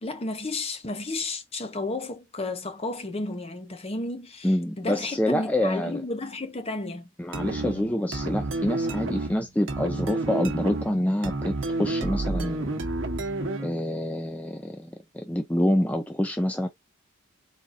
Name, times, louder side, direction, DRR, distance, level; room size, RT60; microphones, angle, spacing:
voice 1, 0.0-7.1, left 2 dB, 30° left, 0.7 m, -33 dB
voice 2, 4.4-6.0 7.2-12.8 13.6-16.7, left 1 dB, 5° left, 0.4 m, -27 dB
sound 1, 7.3-13.8, right 2 dB, 65° right, 0.9 m, -30 dB
4.1 x 3.5 x 2.5 m
head